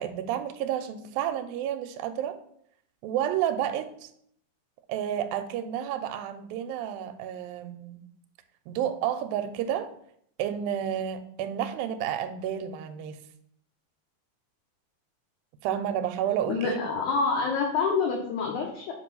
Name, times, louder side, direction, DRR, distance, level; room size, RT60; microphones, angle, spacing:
voice 1, 0.0-2.4 3.0-4.1 4.9-8.0 8.7-9.9 10.4-13.2 15.6-16.8, right 10 dB, 80° right, 9 dB, 2.3 m, -30 dB
voice 2, 16.5-18.9, left 5 dB, 70° left, 1 dB, 1.9 m, -27 dB
5.3 x 5.1 x 5.3 m, 0.67 s
omnidirectional pair, 4.2 m